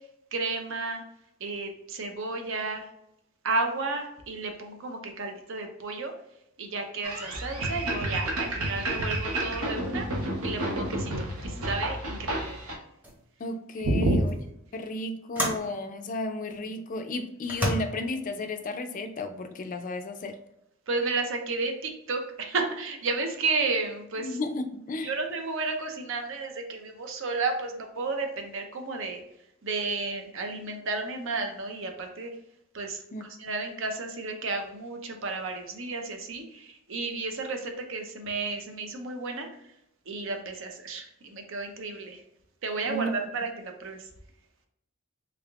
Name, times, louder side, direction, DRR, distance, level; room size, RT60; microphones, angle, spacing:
voice 1, 0.3-1.0 1.4-2.8 3.4-6.1 6.6-10.1 10.4-12.5 13.8-14.3 20.9-24.4 25.0-29.2 29.6-32.3 32.7-39.5 40.1-42.2 42.6-44.1, right 3 dB, 65° right, 4 dB, 0.6 m, -32 dB
sound 1, 7.0-12.8, right 1 dB, 85° right, 0.9 m, -31 dB
sound 2, 12.4-12.6 13.0-13.3 14.3-14.4 15.4-15.7 16.5-16.6 17.4-17.7, equal, 10° right, 0.7 m, -30 dB
voice 2, 13.4-14.3 14.7-20.4 24.2-25.1 33.1-33.2 42.9-43.1, left 1 dB, 40° left, 7 dB, 0.4 m, -33 dB
3.5 x 3.4 x 2.3 m, 0.81 s
head